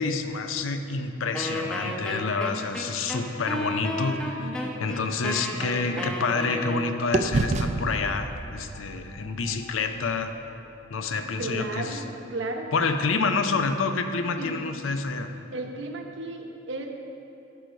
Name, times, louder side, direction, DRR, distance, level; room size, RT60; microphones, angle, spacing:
voice 1, 0.0-4.5 4.8-10.4 10.9-12.0 12.7-15.3, left 4 dB, 85° left, 7 dB, 0.6 m, -28 dB
Wind instrument woodwind instrument, 1.3-7.2, left 1 dB, 5° left, 0.6 m, -32 dB
sound 1, 4.4-6.8 7.1-11.1, right 3 dB, 35° right, 0.3 m, -32 dB
voice 2, 4.4-4.8 11.4-12.0 12.3-12.7 14.4-14.6 15.5-16.9, right 2 dB, 65° right, 2 dB, 0.8 m, -34 dB
Wind instrument woodwind instrument 2, 5.2-10.1, left 4 dB, 60° left, 2.2 m, -54 dB
11.0 x 4.7 x 5.2 m, 2.8 s
head